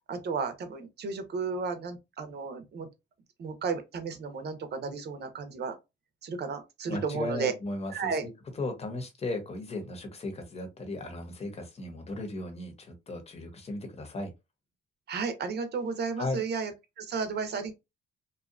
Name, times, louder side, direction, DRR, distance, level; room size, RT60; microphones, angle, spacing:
voice 1, 0.0-2.9 3.4-5.7 6.2-7.5 7.9-8.2 15.1-16.7 17.0-17.7, right 5 dB, 55° right, 0.7 m, -33 dB
voice 2, 6.9-14.3 16.2-16.4, left 2 dB, 30° left, 0.9 m, -36 dB
2.7 x 2.3 x 2.4 m
cardioid pair, 90°, 20 cm